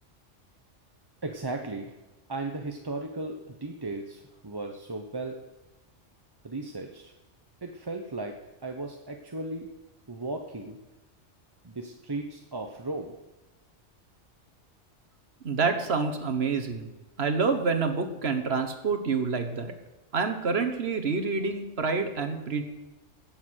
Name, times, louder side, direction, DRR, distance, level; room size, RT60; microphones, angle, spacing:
voice 1, 1.2-1.9 2.3-5.4 6.4-7.1 7.6-9.7 10.1-10.8 11.6-13.2, right 2 dB, 20° right, 3 dB, 0.8 m, -36 dB
voice 2, 15.4-16.9 17.2-19.7 20.1-22.6, right 4 dB, 60° right, 6 dB, 1.5 m, -27 dB
16.5 x 7.5 x 6.3 m, 1.0 s
omnidirectional pair, 1.2 m